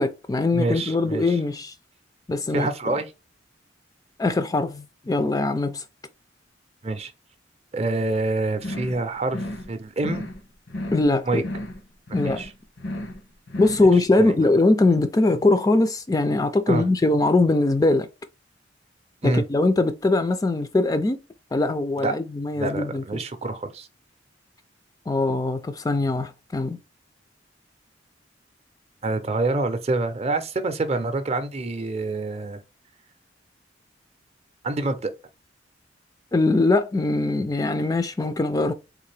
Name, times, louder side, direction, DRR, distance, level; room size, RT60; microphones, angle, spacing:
voice 1, 0.0-1.7 2.3-2.7 4.2-5.8 10.9-11.4 12.1-12.4 13.6-18.1 19.2-21.2 21.5-23.2 25.1-26.8 36.3-38.7, left 2 dB, 20° left, 0.3 m, -21 dB
voice 2, 0.5-1.4 2.5-3.1 6.8-7.1 7.7-9.4 9.7-10.2 11.2-11.4 12.2-12.5 13.8-13.9 14.2-14.5 16.7-16.8 19.2-19.4 22.0-22.1 22.5-23.9 29.0-32.6 34.6-35.1, right 2 dB, 35° right, 0.5 m, -26 dB
sound 1, 8.6-9.0 9.3-9.7 10.0-10.4 10.7-11.1 11.4-11.8 12.1-12.5 12.8-13.2 13.5-13.9, left 1 dB, 90° left, 1.0 m, -33 dB
3.7 x 2.5 x 3.2 m
head